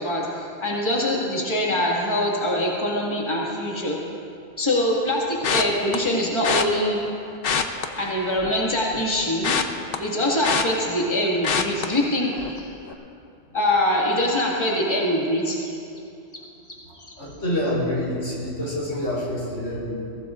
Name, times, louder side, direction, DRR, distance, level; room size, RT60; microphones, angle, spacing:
voice 1, 0.0-4.0 4.6-7.0 8.0-9.5 10.0-12.7 13.5-15.6 17.1-17.2, left 1 dB, 25° left, -4 dB, 2.0 m, -23 dB
sound 1, 5.4-6.0 6.4-6.6 7.3-8.6 8.9-11.1 11.4-11.8 12.3-12.6 12.9-13.0, left 6 dB, 55° left, 0.9 m, -25 dB
voice 2, 17.2-20.0, left 1 dB, 90° left, -5 dB, 4.2 m, -27 dB
22.0 x 17.0 x 2.5 m, 2.6 s
omnidirectional pair, 1.2 m